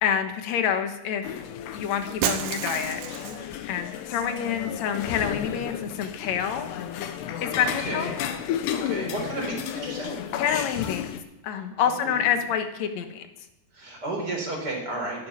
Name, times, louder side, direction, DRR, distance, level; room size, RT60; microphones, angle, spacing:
voice 1, 0.0-1.4 1.7-3.0 3.7-6.7 7.4-8.1 10.4-11.1 11.4-13.2, left 8 dB, 65° left, 7 dB, 1.9 m, -27 dB
sound 1, 1.2-11.2, left 9 dB, 85° left, 3.2 m, -33 dB
Shatter, 2.2-3.6, right 10 dB, 80° right, 3.0 m, -30 dB
voice 2, 7.8-8.2 8.7-10.2 12.0-12.4 13.7-15.3, right 2 dB, 25° right, 0 dB, 4.3 m, -33 dB
12.5 x 11.0 x 9.7 m, 0.93 s
omnidirectional pair, 4.7 m